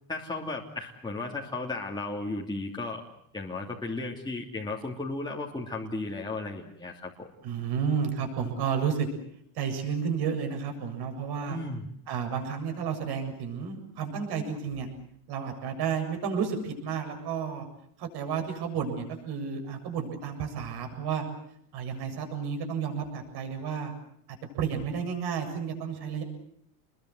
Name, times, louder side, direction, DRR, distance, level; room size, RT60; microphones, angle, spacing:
voice 1, 0.1-3.0 3.3-7.3 11.5-11.9, left 2 dB, 10° left, -2 dB, 3.0 m, -35 dB
voice 2, 7.4-9.1 9.5-11.6 12.1-14.9 15.3-17.7 18.0-21.2 21.7-23.9 24.3-26.2, right 6 dB, 55° right, 5 dB, 7.7 m, -31 dB
28.5 x 22.0 x 7.8 m, 0.69 s
supercardioid pair, 125°, 46 cm